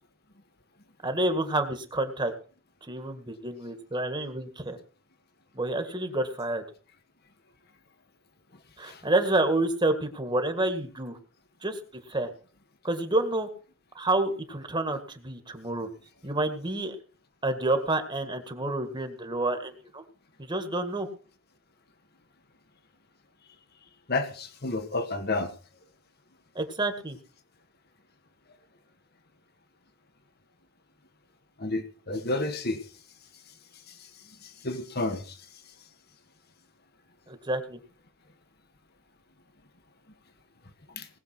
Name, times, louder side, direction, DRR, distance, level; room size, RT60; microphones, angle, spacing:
voice 1, 1.0-2.3 2.8-4.8 5.5-6.6 8.8-11.2 11.6-11.8 12.1-12.3 12.8-13.5 14.0-15.9 16.2-17.0 17.4-20.0 20.4-21.1 26.6-27.2 37.3-37.8, right 2 dB, 25° right, 1.9 m, -28 dB
voice 2, 24.1-25.5 31.6-32.8 34.4-35.4 41.0-41.1, left 2 dB, 55° left, 1.9 m, -30 dB
19.5 x 7.2 x 6.2 m
head